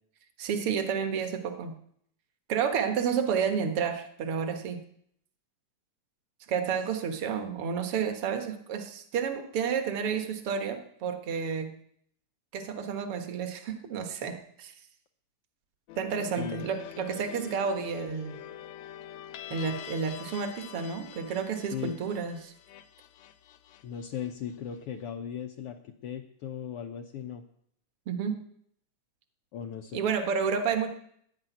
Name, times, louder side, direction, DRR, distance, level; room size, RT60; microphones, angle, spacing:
voice 1, 0.4-1.8 2.5-4.8 6.5-11.8 12.5-14.7 16.0-18.4 19.5-22.5 28.1-28.4 29.9-30.9, right 6 dB, 55° right, 7 dB, 1.9 m, -30 dB
sound 1, 15.9-24.8, left 11 dB, 75° left, 1.7 m, -46 dB
voice 2, 16.4-16.7 21.7-22.0 23.8-27.4 29.5-30.0, left 8 dB, 90° left, 4 dB, 1.2 m, -37 dB
11.5 x 10.0 x 9.2 m, 0.69 s
omnidirectional pair, 3.7 m